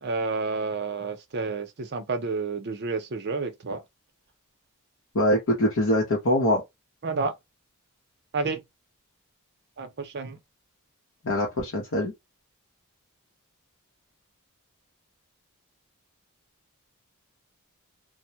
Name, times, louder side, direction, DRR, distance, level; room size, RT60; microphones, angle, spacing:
voice 1, 0.0-3.8 7.0-7.3 8.3-8.6 9.8-10.4, right 4 dB, 50° right, 0.6 m, -30 dB
voice 2, 5.1-6.6 11.2-12.1, left 1 dB, 60° left, 0.7 m, -23 dB
2.2 x 2.0 x 2.7 m
head